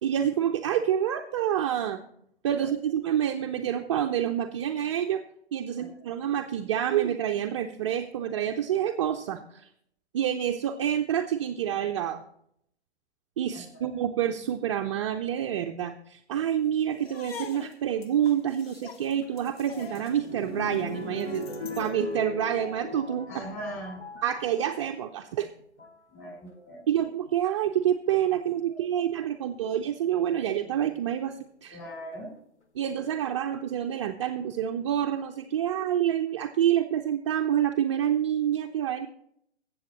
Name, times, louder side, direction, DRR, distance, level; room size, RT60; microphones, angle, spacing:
voice 1, 0.0-2.0 2.4-5.2 5.5-9.7 10.1-12.2 13.4-23.3 24.2-25.5 26.9-31.8 32.7-39.1, right 10 dB, 30° right, 3 dB, 0.4 m, -28 dB
voice 2, 13.5-13.9 23.3-24.0 26.1-27.0 28.7-29.1 31.7-32.3, equal, 25° left, 1 dB, 5.5 m, -41 dB
sound 1, 17.0-22.0, left 5 dB, 60° left, 1.0 m, -45 dB
sound 2, 19.2-24.9 25.6-26.0 27.3-27.4 28.1-28.4 30.5-31.1 31.8-31.9 32.1-32.2, left 3 dB, 80° left, 1.4 m, -39 dB
21.5 x 7.5 x 3.0 m, 0.72 s
figure-of-eight pair, 115°, 34 cm